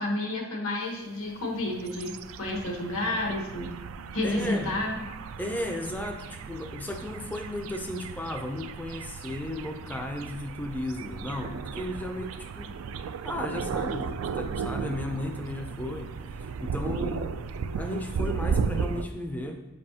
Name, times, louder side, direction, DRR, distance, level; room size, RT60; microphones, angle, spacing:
voice 1, 0.0-2.1 2.4-3.8 4.1-5.0, left 2 dB, 75° left, 0 dB, 1.3 m, -30 dB
sound 1, 1.3-19.0, right 5 dB, 70° right, 0.3 m, -35 dB
voice 2, 4.2-4.8 5.4-12.7 13.2-17.4 17.7-19.7, left 1 dB, 10° left, 4 dB, 0.4 m, -35 dB
7.5 x 4.8 x 2.8 m, 1.1 s
head